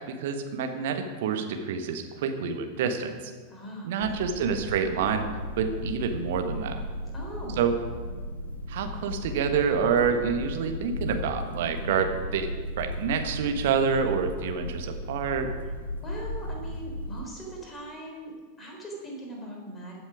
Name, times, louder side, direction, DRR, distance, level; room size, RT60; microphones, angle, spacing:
voice 1, 0.1-3.2 3.8-5.2 5.6-6.8 7.6-7.8 8.7-12.5 12.8-15.5, right 6 dB, 55° right, 6 dB, 1.4 m, -27 dB
voice 2, 3.5-4.6 7.1-7.6 11.8-12.1 16.0-18.3 18.6-20.0, right 1 dB, 15° left, -1 dB, 3.9 m, -40 dB
sound 1, 4.0-17.2, left 1 dB, 70° left, 1.3 m, -36 dB
15.5 x 8.1 x 5.0 m, 1.5 s
figure-of-eight pair, 90°, 0 cm